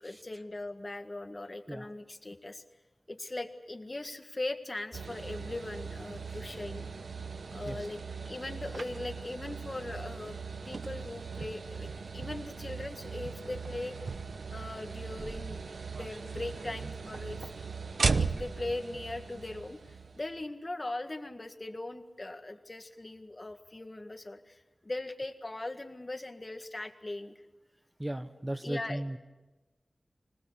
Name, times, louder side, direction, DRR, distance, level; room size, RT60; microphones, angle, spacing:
voice 1, 0.0-2.6 3.1-6.9 7.5-8.0 8.2-10.4 10.7-13.9 14.5-15.6 16.0-17.5 18.2-27.4 28.6-29.0, left 2 dB, 35° left, 7 dB, 1.8 m, -40 dB
sound 1, 4.9-20.4, right 4 dB, 85° right, 0.8 m, -37 dB
voice 2, 28.0-29.2, right 1 dB, 20° right, 8 dB, 1.2 m, -36 dB
25.5 x 18.5 x 8.4 m, 1.1 s
wide cardioid pair, 65°, 0 cm